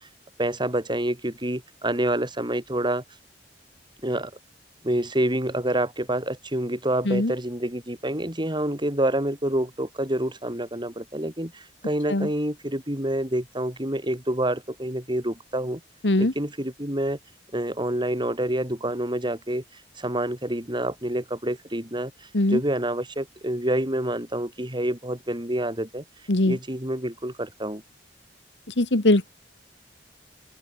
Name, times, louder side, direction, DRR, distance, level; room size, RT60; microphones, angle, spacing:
voice 1, 0.4-3.0 4.0-4.3 4.8-15.8 16.2-17.2 17.5-19.6 20.0-22.1 22.5-26.0 26.5-27.8, right 1 dB, 25° right, 6.8 m, -27 dB
voice 2, 28.8-29.3, left 1 dB, 85° left, 1.8 m, -21 dB
open air
head